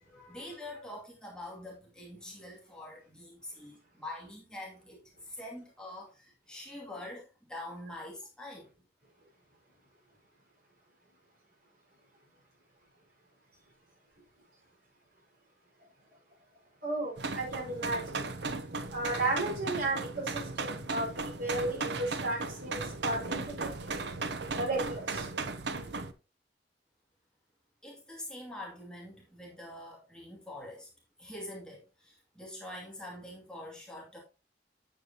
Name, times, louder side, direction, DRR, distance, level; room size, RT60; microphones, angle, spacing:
voice 1, 0.0-8.7 27.8-30.9 31.2-34.2, left 1 dB, 5° left, 2.5 m, -45 dB
voice 2, 16.8-18.2 18.9-24.0 24.5-25.3, right 2 dB, 55° right, 5.2 m, -34 dB
sound 1, 17.2-26.1, right 3 dB, 75° right, 0.9 m, -36 dB
9.6 x 8.5 x 2.9 m
head